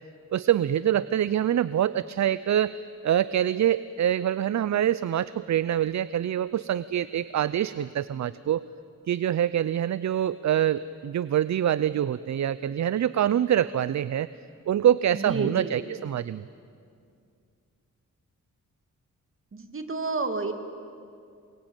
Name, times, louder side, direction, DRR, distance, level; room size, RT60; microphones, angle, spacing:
voice 1, 0.3-2.7 3.0-8.6 9.1-14.3 14.7-16.4, right 10 dB, 65° right, 16 dB, 0.6 m, -25 dB
voice 2, 15.1-15.8 19.5-20.5, right 3 dB, 40° right, 6 dB, 2.8 m, -30 dB
28.0 x 23.0 x 9.1 m, 2.3 s
cardioid pair, 80°, 31 cm